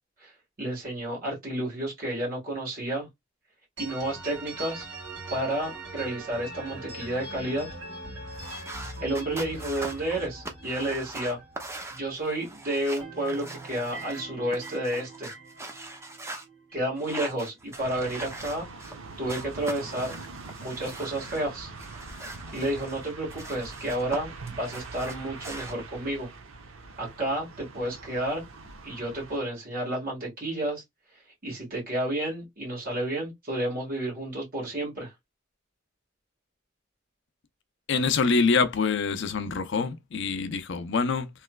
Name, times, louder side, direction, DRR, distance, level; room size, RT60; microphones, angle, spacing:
voice 1, 0.6-3.1 3.8-4.8 5.3-7.7 9.0-11.4 11.9-15.3 16.7-18.7 19.2-20.2 20.6-21.7 22.5-26.3 27.0-28.4 28.8-30.8 31.4-35.1, right 1 dB, 45° right, 1.7 m, -31 dB
sound 1, 3.8-12.5 12.8-16.9, right 2 dB, 65° right, 2.0 m, -42 dB
sound 2, 8.3-14.2 14.5-16.4 17.0-19.0 19.3-21.4 21.8-24.2 24.5-25.7, right 2 dB, 15° right, 0.6 m, -41 dB
sound 3, 17.8-29.4, right 3 dB, 90° right, 0.8 m, -43 dB
voice 2, 37.9-41.3, left 4 dB, 65° left, 0.5 m, -25 dB
3.1 x 3.0 x 2.2 m
head